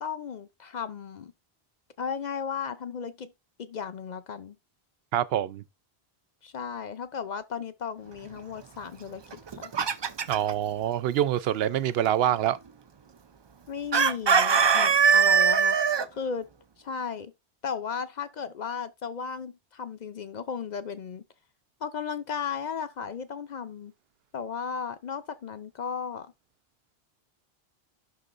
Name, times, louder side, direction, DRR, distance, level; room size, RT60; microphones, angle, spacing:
voice 1, 0.0-1.3 2.0-3.3 3.6-4.6 6.4-9.7 13.7-15.8 16.1-16.5 16.8-17.3 17.6-21.2 21.8-23.9 24.3-26.3, left 6 dB, 55° left, 0.6 m, -35 dB
voice 2, 5.1-5.6 10.3-12.6, right 11 dB, 75° right, 0.8 m, -25 dB
Chicken rooster, 9.3-10.5 13.9-16.1, right 6 dB, 45° right, 0.3 m, -21 dB
11.0 x 3.8 x 2.5 m
omnidirectional pair, 1.0 m